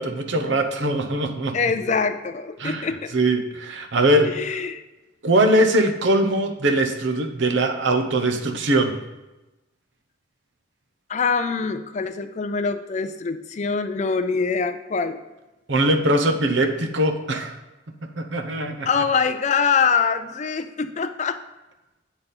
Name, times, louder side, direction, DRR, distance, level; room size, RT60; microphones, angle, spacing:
voice 1, 0.0-1.6 2.6-4.3 5.2-9.0 15.7-17.5 18.2-18.9, right 1 dB, 65° right, 5 dB, 0.8 m, -21 dB
voice 2, 1.5-3.1 4.3-4.8 11.1-15.2 18.9-21.4, left 5 dB, 35° left, 8 dB, 0.4 m, -24 dB
7.9 x 4.2 x 5.3 m, 1.1 s
head